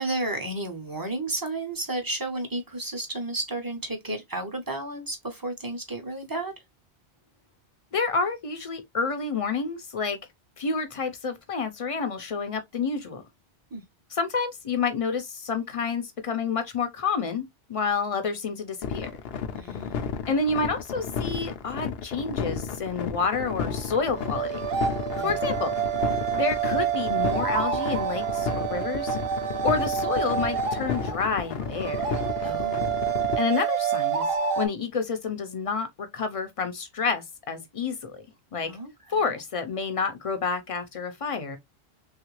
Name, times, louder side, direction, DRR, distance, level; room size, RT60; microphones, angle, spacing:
voice 1, 0.0-6.5 13.7-13.8 19.5-20.0 25.2-25.4 32.4-33.0 38.6-39.2, right 2 dB, 25° right, 0.6 m, -32 dB
voice 2, 7.9-10.2 10.6-13.2 14.1-19.1 20.3-24.6 25.2-25.8 26.3-29.2 29.6-32.2 33.4-34.3 34.6-38.2 38.5-38.7 39.1-41.6, left 4 dB, 40° left, 0.5 m, -29 dB
sound 1, 18.8-33.4, left 7 dB, 70° left, 0.8 m, -32 dB
sound 2, 23.7-34.7, right 8 dB, 65° right, 0.8 m, -28 dB
3.2 x 2.4 x 3.0 m
omnidirectional pair, 1.1 m